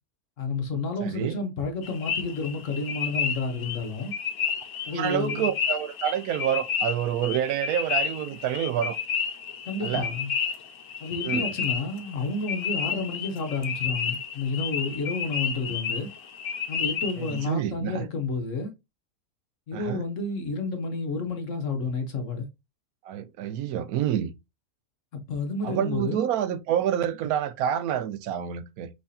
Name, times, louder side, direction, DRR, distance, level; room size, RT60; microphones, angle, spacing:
voice 1, 0.4-4.1 4.9-5.5 9.7-10.3 11.0-16.1 16.7-18.7 19.7-22.5 25.1-26.3, left 3 dB, 60° left, 1.3 m, -30 dB
voice 2, 1.0-1.4 4.9-9.0 9.8-10.1 11.2-11.5 17.2-18.1 19.7-20.1 23.0-24.3 25.6-28.9, right 10 dB, 75° right, 1.0 m, -28 dB
sound 1, 1.8-17.5, left 7 dB, 75° left, 1.3 m, -31 dB
5.5 x 3.3 x 2.7 m
omnidirectional pair, 1.6 m